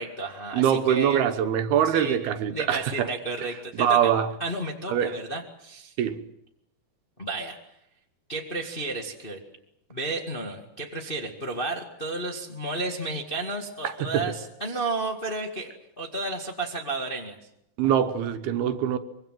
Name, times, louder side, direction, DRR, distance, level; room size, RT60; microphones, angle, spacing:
voice 1, 0.0-1.2 1.8-2.2 2.5-4.1 4.4-5.9 7.2-7.6 8.3-9.4 9.9-15.7 16.0-17.4, right 2 dB, 25° left, 1.1 m, -32 dB
voice 2, 0.5-3.1 3.7-4.3 4.9-5.1 6.0-6.2 13.8-14.3 17.8-19.0, right 9 dB, 75° right, 2.9 m, -23 dB
25.0 x 23.0 x 7.6 m
omnidirectional pair, 4.8 m